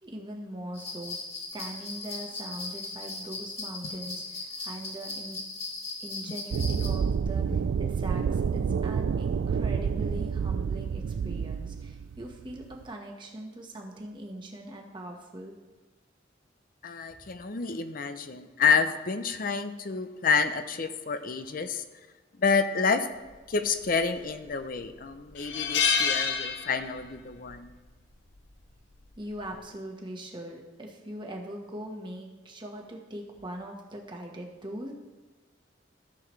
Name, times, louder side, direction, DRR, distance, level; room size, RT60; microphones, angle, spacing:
voice 1, 0.0-1.2 1.5-5.4 6.0-15.5 29.2-34.9, right 1 dB, 25° right, 0 dB, 1.3 m, -41 dB
sound 1, 0.7-6.9, left 3 dB, 30° left, 2.1 m, -38 dB
sound 2, 6.5-12.8, right 6 dB, 80° right, 0.3 m, -29 dB
voice 2, 16.8-21.8 22.4-23.1 23.5-27.8, left 5 dB, 50° left, 9 dB, 0.6 m, -28 dB
sound 3, 24.1-24.5 24.9-25.0 25.4-27.2 27.4-27.7 28.9-29.2, left 6 dB, 70° left, 0.9 m, -28 dB
14.5 x 6.9 x 3.2 m, 1.3 s
head